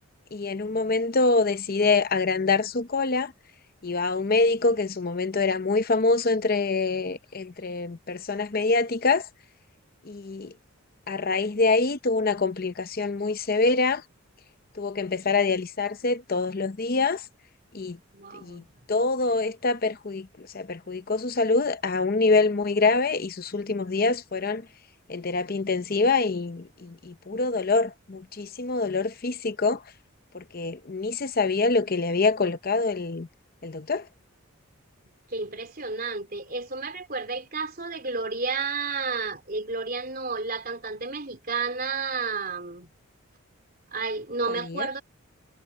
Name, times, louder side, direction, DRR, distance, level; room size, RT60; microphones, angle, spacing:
voice 1, 0.3-3.3 3.8-9.3 10.1-10.5 11.1-14.0 14.8-17.2 17.7-18.0 18.3-18.6 18.9-24.6 25.1-29.8 30.3-33.3 33.6-34.0 44.5-44.9, left 3 dB, 45° left, 0.7 m, -25 dB
voice 2, 18.1-18.8 35.3-42.9 43.9-45.0, right 4 dB, 40° right, 3.7 m, -31 dB
head